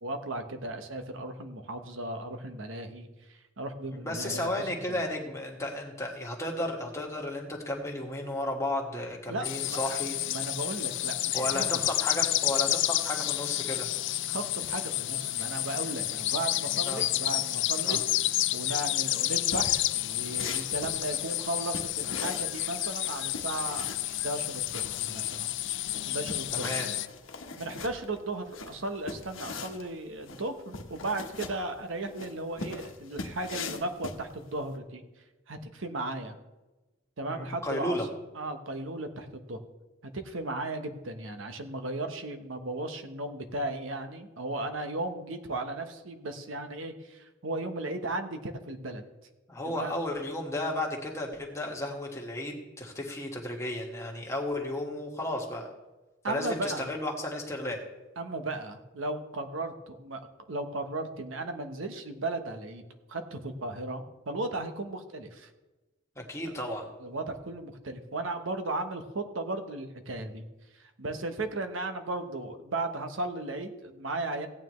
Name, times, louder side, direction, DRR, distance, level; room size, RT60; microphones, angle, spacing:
voice 1, 0.0-5.0 9.3-9.9 10.3-11.8 14.3-18.0 18.5-25.5 26.1-26.7 27.6-35.0 35.5-36.4 37.2-38.0 38.3-39.6 40.0-49.0 49.6-49.9 56.2-56.9 58.2-60.2 60.5-65.5 67.0-70.4 70.8-74.5, right 2 dB, 80° right, 7 dB, 1.1 m, -36 dB
voice 2, 3.9-10.2 11.3-13.9 16.8-17.0 17.8-18.0 26.5-26.9 37.3-38.1 49.5-55.7 56.2-57.8 66.1-66.9, left 1 dB, 15° left, 0 dB, 1.7 m, -33 dB
sound 1, 9.4-27.1, left 15 dB, 65° left, 0.4 m, -30 dB
sound 2, 19.4-34.7, left 4 dB, 85° left, 1.1 m, -41 dB
16.5 x 9.3 x 3.2 m, 1.1 s
head